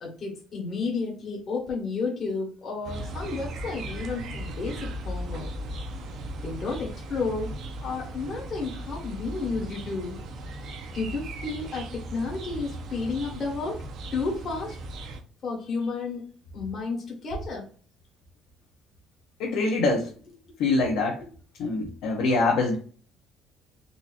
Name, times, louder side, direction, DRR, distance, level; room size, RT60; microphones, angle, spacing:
voice 1, 0.0-5.5 6.4-7.5 7.8-10.2 10.9-13.8 14.1-14.8 15.4-17.6, left 4 dB, 40° left, -2 dB, 1.3 m, -32 dB
sound 1, 2.8-15.2, right 1 dB, 60° right, 0.6 m, -37 dB
voice 2, 19.4-20.1 20.6-21.2 21.6-22.7, left 3 dB, 80° left, -1 dB, 0.8 m, -24 dB
3.8 x 2.8 x 2.5 m, 0.39 s
cardioid pair, 135°, 0 cm